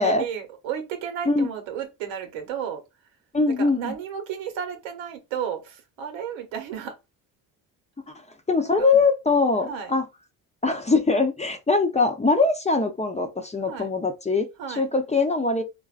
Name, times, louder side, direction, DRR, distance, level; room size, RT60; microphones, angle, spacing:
voice 1, 0.0-2.8 3.5-6.9 8.6-8.9 9.7-9.9 13.7-13.9 14.6-14.9, right 8 dB, 80° right, 1.1 m, -33 dB
voice 2, 3.3-3.9 8.1-8.2 8.5-10.0 10.6-14.5 14.8-15.6, left 3 dB, 15° left, 0.7 m, -22 dB
3.8 x 2.2 x 2.4 m
hypercardioid pair, 60°, 45 cm